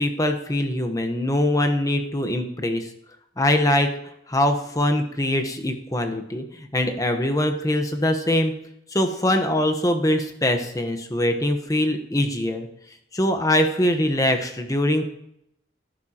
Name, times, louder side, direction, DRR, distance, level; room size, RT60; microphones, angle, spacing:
voice 1, 0.0-2.9 3.4-3.9 4.3-8.5 8.9-12.7 13.1-15.1, left 1 dB, 20° left, 5 dB, 1.1 m, -22 dB
17.5 x 10.5 x 3.0 m, 0.77 s
head